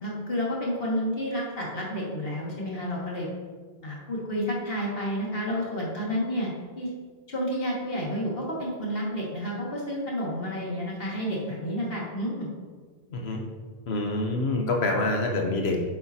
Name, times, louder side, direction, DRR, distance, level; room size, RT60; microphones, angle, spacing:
voice 1, 0.0-3.3 3.8-6.9 7.3-12.5, equal, 65° left, -4 dB, 2.2 m, -30 dB
voice 2, 13.1-13.4 13.9-15.8, left 2 dB, 85° left, 2 dB, 1.2 m, -26 dB
8.9 x 7.8 x 2.8 m, 1.5 s
omnidirectional pair, 1.0 m